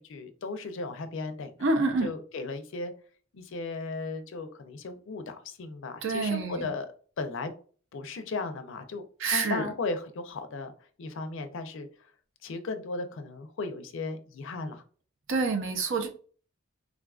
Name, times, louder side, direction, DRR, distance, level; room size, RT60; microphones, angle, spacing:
voice 1, 0.0-1.5 2.0-2.9 3.3-6.9 7.2-7.5 7.9-10.7 11.0-12.1 12.4-14.8, left 3 dB, 65° left, 9 dB, 0.5 m, -36 dB
voice 2, 1.6-2.1 6.0-6.7 9.2-9.7 15.3-16.1, right 3 dB, 65° right, 5 dB, 0.6 m, -27 dB
3.6 x 2.4 x 2.3 m, 0.41 s
head